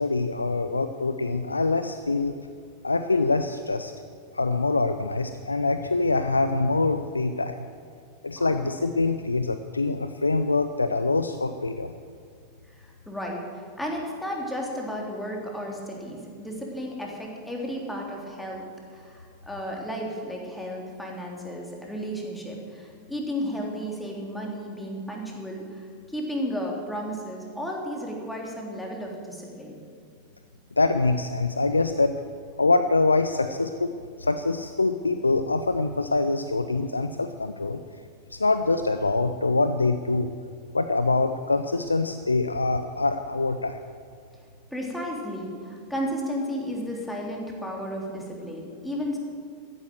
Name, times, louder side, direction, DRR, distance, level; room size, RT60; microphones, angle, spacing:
voice 1, 0.0-2.3 2.8-3.9 4.3-7.6 8.2-11.9 30.8-32.2 32.6-33.9 34.2-37.8 38.3-40.3 40.7-43.8, left 3 dB, 80° left, 9 dB, 0.6 m, -24 dB
voice 2, 8.4-8.7 12.8-18.6 18.9-29.7 44.7-49.2, equal, 5° left, -1 dB, 3.4 m, -33 dB
14.0 x 11.0 x 7.8 m, 2.2 s
figure-of-eight pair, 90°, 0 cm